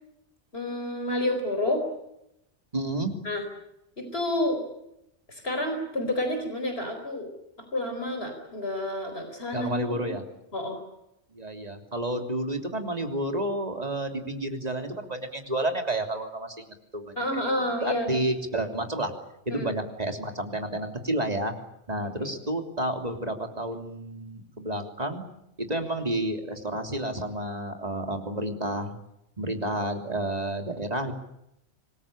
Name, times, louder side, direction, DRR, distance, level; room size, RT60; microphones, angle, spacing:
voice 1, 0.5-1.8 3.2-3.5 4.0-4.6 5.3-7.3 7.6-10.0 10.5-10.8 17.2-18.2 19.5-19.7 22.2-22.3, left 1 dB, 60° left, 6 dB, 4.8 m, -29 dB
voice 2, 2.7-3.1 9.5-10.2 11.3-16.6 16.9-17.1 17.6-19.1 19.4-21.5 21.9-25.2 25.6-28.9 29.4-31.1, right 1 dB, 35° right, 4 dB, 3.3 m, -30 dB
26.0 x 20.5 x 8.8 m, 0.83 s
omnidirectional pair, 1.1 m